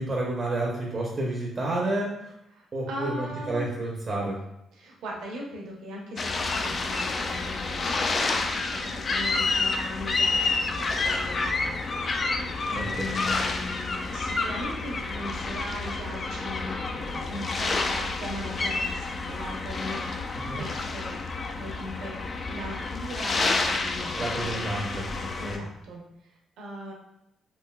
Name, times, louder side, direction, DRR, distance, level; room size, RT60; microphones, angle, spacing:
voice 1, 0.0-2.3 2.7-4.4 12.7-13.2 20.5-20.7 24.2-25.0 25.5-25.6, right 2 dB, 35° right, -2 dB, 0.6 m, -30 dB
voice 2, 2.5-3.6 4.7-20.1 20.5-22.2 22.5-24.6 25.4-26.9, equal, 85° right, -2 dB, 0.8 m, -39 dB
sound 1, 6.2-25.6, left 3 dB, 40° left, 0.3 m, -29 dB
3.3 x 2.6 x 2.3 m, 0.83 s
cardioid pair, 90°, 0 cm